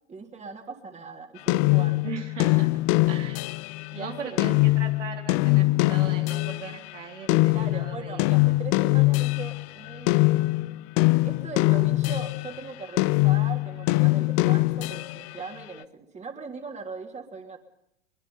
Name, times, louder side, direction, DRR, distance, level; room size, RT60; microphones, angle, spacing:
voice 1, 0.1-2.1 3.9-4.4 7.5-10.6 11.2-17.6, right 4 dB, 20° right, 4 dB, 3.3 m, -40 dB
sound 1, 1.5-6.8 7.3-12.6 13.0-15.4, left 22 dB, 45° left, 0.7 m, -23 dB
voice 2, 2.0-3.4 3.9-8.6, right 6 dB, 90° right, 2 dB, 4.1 m, -39 dB
24.0 x 21.5 x 5.7 m, 0.82 s
hypercardioid pair, 105°, 35 cm